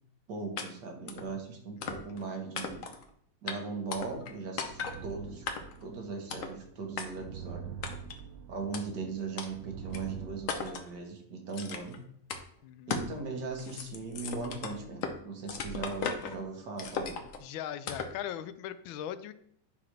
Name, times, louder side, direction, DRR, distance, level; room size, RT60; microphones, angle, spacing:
voice 1, 0.3-2.9 3.4-5.5 5.8-7.8 8.5-12.0 12.9-17.2, right 4 dB, 60° right, 3 dB, 1.7 m, -39 dB
sound 1, 0.6-0.7 1.1-1.3 1.8-2.2 2.5-3.0 3.5-3.6 3.9-4.3 4.6-5.0 5.5-5.8 6.3-6.5 7.0-7.1 7.8-8.2 8.7-8.8 9.4-9.5 9.9-10.0 10.5-10.9 11.5-12.0 12.3-12.4 12.9-13.1 13.5-15.2 15.5-16.4 16.8-17.4 17.9-18.2, left 5 dB, 55° left, 1.0 m, -36 dB
sound 2, 4.3-10.4, right 7 dB, 75° right, 0.8 m, -45 dB
voice 2, 12.6-13.0 17.4-19.3, left 10 dB, 85° left, 12 dB, 1.3 m, -39 dB
8.9 x 6.0 x 3.3 m, 0.69 s
omnidirectional pair, 2.1 m